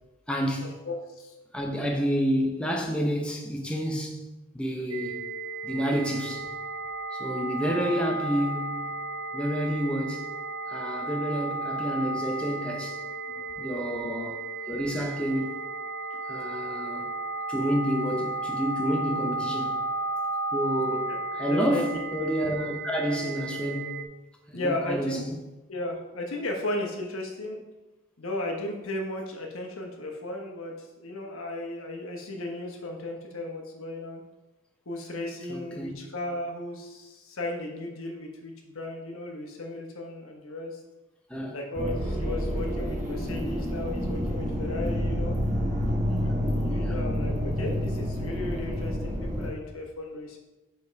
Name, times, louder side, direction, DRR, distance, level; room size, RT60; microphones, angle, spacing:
voice 1, 0.3-0.7 1.5-4.3 4.5-5.3 5.6-6.5 7.1-9.0 9.3-10.3 10.7-13.0 13.6-15.6 16.3-17.1 17.5-19.8 20.5-24.1 24.5-25.3 35.5-35.9 41.3-41.6 46.3-47.0, equal, 5° left, 0.6 m, -29 dB
voice 2, 0.8-1.3 13.3-14.0 21.1-21.2 21.5-21.8 24.5-25.2 25.7-27.6 28.2-34.2 34.9-40.8 41.5-45.3 46.0-50.4, left 2 dB, 80° left, 1.2 m, -35 dB
sound 1, 4.9-24.1, right 2 dB, 85° right, 0.5 m, -34 dB
sound 2, 41.7-49.5, equal, 35° right, 1.2 m, -28 dB
5.3 x 4.6 x 4.6 m
head